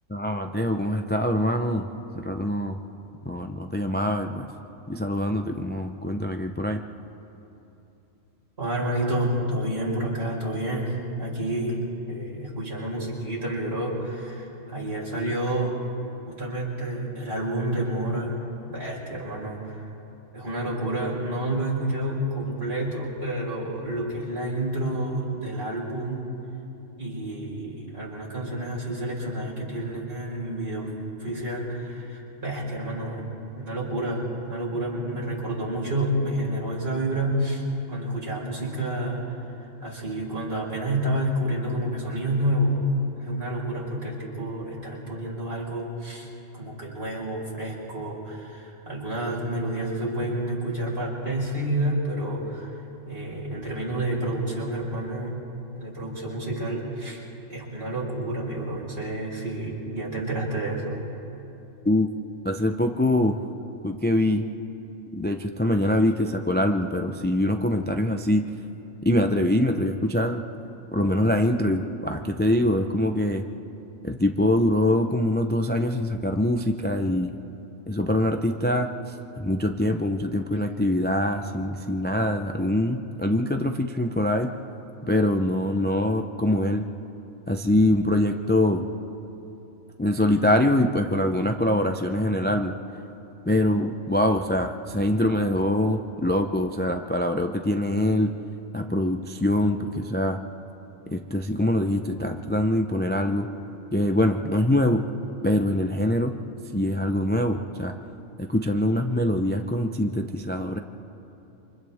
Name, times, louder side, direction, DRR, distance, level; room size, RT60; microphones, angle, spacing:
voice 1, 0.1-1.9 2.1-2.8 3.2-4.5 4.9-6.8 61.8-62.1 62.4-63.4 63.8-64.4 65.1-68.5 69.0-70.4 70.9-73.4 74.0-77.3 77.9-84.5 85.0-86.9 87.5-88.9 90.0-92.8 93.4-98.3 98.7-100.4 101.1-103.5 103.9-105.0 105.4-106.3 106.7-107.9 108.4-110.8, left 1 dB, 15° left, 5 dB, 0.4 m, -24 dB
voice 2, 8.6-15.8 16.3-19.9 20.3-26.3 27.0-30.9 31.2-33.3 33.5-39.3 39.8-42.8 43.2-46.3 46.5-52.8 53.1-55.4 55.7-57.2 57.5-61.0, right 1 dB, 50° right, -5 dB, 5.3 m, -29 dB
28.5 x 26.0 x 3.6 m, 2.9 s
omnidirectional pair, 1.4 m